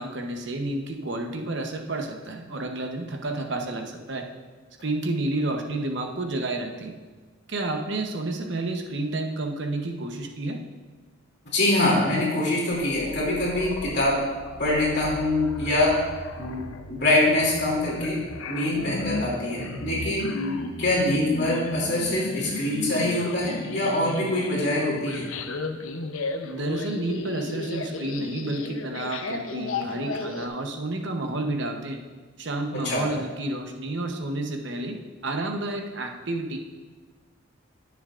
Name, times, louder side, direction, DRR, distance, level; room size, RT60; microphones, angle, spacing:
voice 1, 0.0-4.3 4.8-6.9 7.5-10.6 26.4-32.0 32.4-35.0 35.2-36.6, right 2 dB, 60° right, 3 dB, 0.9 m, -30 dB
voice 2, 11.5-14.2 14.6-15.9 16.4-16.6 16.9-18.2 18.5-20.4 20.8-25.3 32.8-33.0, left 1 dB, 55° left, -5 dB, 2.8 m, -24 dB
sound 1, 12.7-30.5, left 2 dB, 85° left, 0.7 m, -35 dB
16.5 x 6.9 x 2.5 m, 1.4 s
head